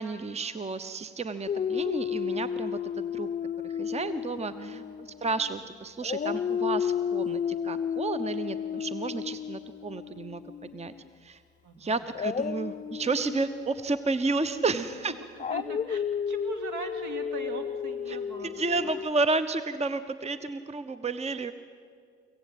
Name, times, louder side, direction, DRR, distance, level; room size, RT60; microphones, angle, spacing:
voice 1, 0.0-3.3 3.6-10.9 11.2-11.4 11.8-15.1 18.1-18.2 18.4-21.5, right 3 dB, 20° right, 13 dB, 0.9 m, -31 dB
Dog, 1.5-5.6 6.0-11.0 12.1-19.1, left 8 dB, 20° left, 0.5 m, -33 dB
voice 2, 4.5-4.8 11.6-12.1 14.7-14.8 15.5-18.9, right 3 dB, 60° right, 7 dB, 2.5 m, -40 dB
25.0 x 16.0 x 7.9 m, 2.1 s
figure-of-eight pair, 45°, 34 cm